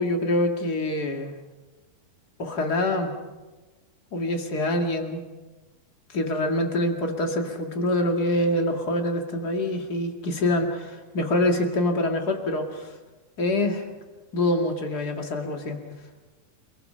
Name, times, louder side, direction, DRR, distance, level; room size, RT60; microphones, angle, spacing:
voice 1, 0.0-1.3 2.4-3.1 4.1-5.2 6.1-12.9 13.4-13.9 14.3-15.8, left 1 dB, 35° left, 3 dB, 1.9 m, -25 dB
28.5 x 20.5 x 5.7 m, 1.2 s
omnidirectional pair, 4.5 m